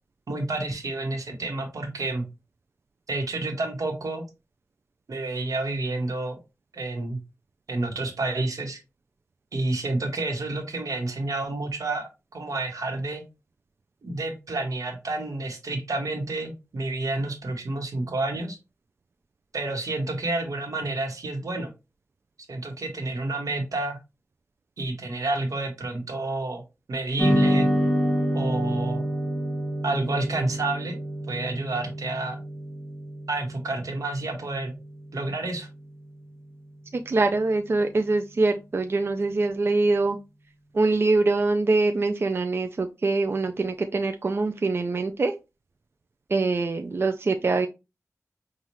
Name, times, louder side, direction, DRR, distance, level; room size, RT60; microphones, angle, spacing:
voice 1, 0.3-2.2 3.1-4.2 5.1-6.4 6.7-7.2 7.7-8.8 9.5-13.2 14.0-18.6 19.5-21.7 22.5-24.0 24.8-26.6 26.9-27.7 28.3-29.0 29.8-31.0 31.3-32.4 33.3-34.8 35.1-35.7, right 2 dB, 80° right, 3 dB, 1.2 m, -29 dB
sound 1, 27.2-35.7, equal, 10° left, 1.3 m, -28 dB
voice 2, 36.9-40.2 40.7-45.3 46.3-47.7, right 3 dB, 45° right, 6 dB, 0.4 m, -24 dB
5.5 x 2.4 x 3.0 m, 0.26 s
wide cardioid pair, 100°, 6 cm